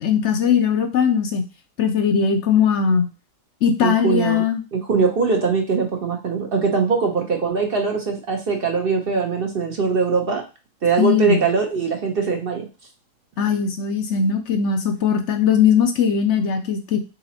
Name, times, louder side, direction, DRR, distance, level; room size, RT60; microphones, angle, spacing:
voice 1, 0.0-1.4 1.8-3.1 3.6-4.6 11.0-11.4 13.4-17.0, left 7 dB, 65° left, 6 dB, 0.9 m, -19 dB
voice 2, 3.8-4.4 4.7-10.4 10.8-12.7, right 5 dB, 50° right, 3 dB, 0.9 m, -21 dB
4.0 x 3.8 x 2.8 m, 0.32 s
omnidirectional pair, 1.4 m